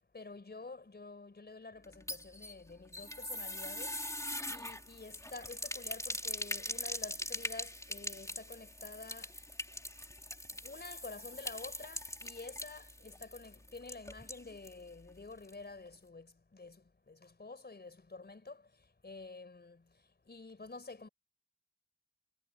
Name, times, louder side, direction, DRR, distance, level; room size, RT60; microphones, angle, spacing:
voice 1, 0.1-4.0 4.5-9.3 10.5-18.7 19.0-19.8 20.3-21.1, left 3 dB, 70° left, 4.4 m, -49 dB
sound 1, 1.8-14.8 15.1-15.2 15.5-15.6, left 1 dB, 20° left, 3.3 m, -42 dB
wide cardioid pair, 40°, 17 cm